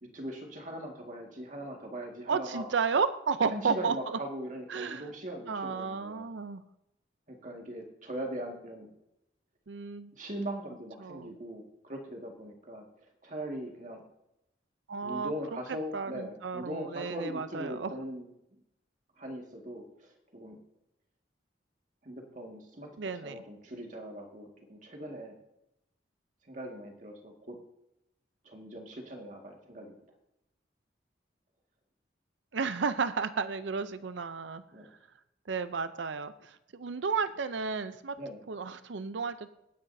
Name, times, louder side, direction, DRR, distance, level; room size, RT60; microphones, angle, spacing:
voice 1, 0.0-2.7 3.5-6.3 7.3-8.9 10.1-14.0 15.0-18.6 19.2-20.6 22.0-25.4 26.4-27.6 28.4-30.0 34.7-34.9 38.2-38.4, equal, 45° right, 2 dB, 1.9 m, -40 dB
voice 2, 2.3-4.2 4.7-5.0 5.5-6.6 9.7-10.1 11.0-11.4 14.9-15.3 15.9-17.9 23.0-23.4 32.5-34.6 35.5-38.2 38.5-39.5, right 5 dB, 85° right, 12 dB, 0.6 m, -32 dB
24.5 x 9.7 x 2.7 m, 0.86 s
head